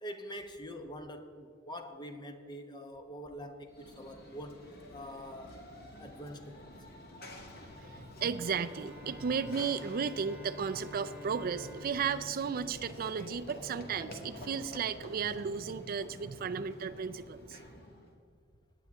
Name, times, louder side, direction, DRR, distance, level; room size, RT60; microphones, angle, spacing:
voice 1, 0.0-5.6 6.0-6.7, equal, 20° left, 6 dB, 0.9 m, -45 dB
Run / Train, 3.7-18.1, left 1 dB, 55° left, 1.9 m, -49 dB
voice 2, 7.7-17.6, right 6 dB, 50° right, 11 dB, 0.4 m, -34 dB
Bowed string instrument, 8.3-13.8, equal, 10° right, 1.0 m, -51 dB
18.5 x 9.3 x 3.6 m, 2.3 s
head